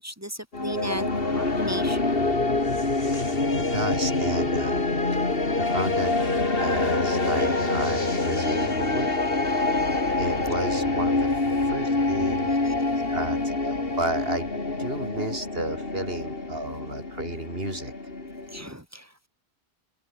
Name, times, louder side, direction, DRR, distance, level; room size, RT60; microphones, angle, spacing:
voice 1, 0.0-2.2 4.8-5.3 6.7-6.8 7.4-7.7 9.5-9.6 12.6-12.7 18.5-19.3, equal, 15° right, 3.0 m, -37 dB
sound 1, 0.5-18.7, left 2 dB, 60° left, 3.4 m, -26 dB
voice 2, 3.1-4.8 5.6-9.1 10.2-11.3 11.7-12.5 13.1-17.9, right 1 dB, 60° right, 6.0 m, -32 dB
omnidirectional pair, 1.1 m